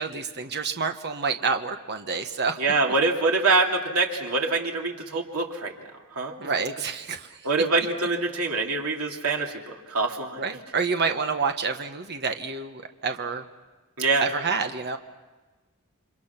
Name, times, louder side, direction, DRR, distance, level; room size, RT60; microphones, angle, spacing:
voice 1, 0.0-2.6 6.4-7.3 10.4-13.4 14.2-15.0, right 5 dB, 50° right, 6 dB, 1.3 m, -28 dB
voice 2, 2.6-6.3 7.4-10.4 14.0-14.3, right 3 dB, 85° right, 1 dB, 2.7 m, -25 dB
29.0 x 25.5 x 5.9 m, 1.2 s
head